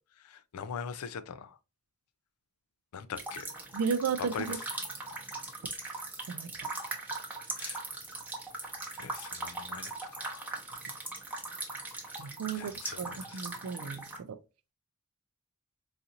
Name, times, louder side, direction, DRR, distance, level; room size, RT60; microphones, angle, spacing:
voice 1, 0.3-1.5 2.9-3.5 4.2-4.5 7.6-7.8 9.0-10.5 12.5-13.4, left 6 dB, 80° left, 0.4 m, -42 dB
sound 1, 3.2-14.2, right 2 dB, 5° right, 0.7 m, -40 dB
voice 2, 3.7-4.6 6.3-6.5 12.2-14.4, right 6 dB, 80° right, 0.4 m, -34 dB
4.0 x 2.5 x 2.8 m
head